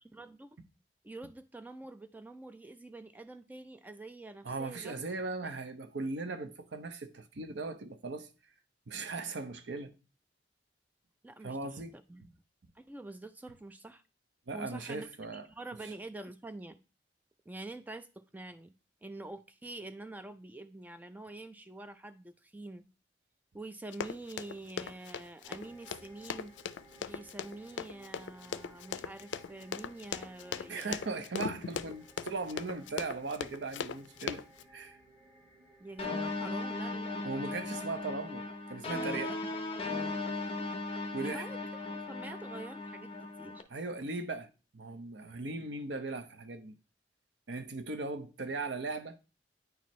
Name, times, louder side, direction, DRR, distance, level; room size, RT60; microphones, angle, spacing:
voice 1, 0.1-0.6 1.0-5.1 5.4-5.5 11.2-11.8 12.1-12.2 12.8-14.0 14.5-15.1 15.3-16.8 17.5-18.7 19.0-22.8 23.5-26.5 27.0-31.0 35.8-37.3 37.6-37.8 41.2-43.1 43.4-43.6, right 2 dB, 10° right, 0.3 m, -46 dB
voice 2, 4.4-8.3 8.9-9.9 11.4-11.9 14.5-15.5 30.7-34.4 34.7-35.0 37.2-39.4 41.1-41.5 43.7-46.8 47.5-49.2, right 3 dB, 75° right, 0.7 m, -38 dB
Run, 23.9-34.6, left 7 dB, 90° left, 0.4 m, -39 dB
sound 1, 25.4-40.4, right 1 dB, 30° right, 2.8 m, -60 dB
sound 2, 36.0-43.6, left 2 dB, 35° left, 0.7 m, -37 dB
9.2 x 4.3 x 3.1 m
head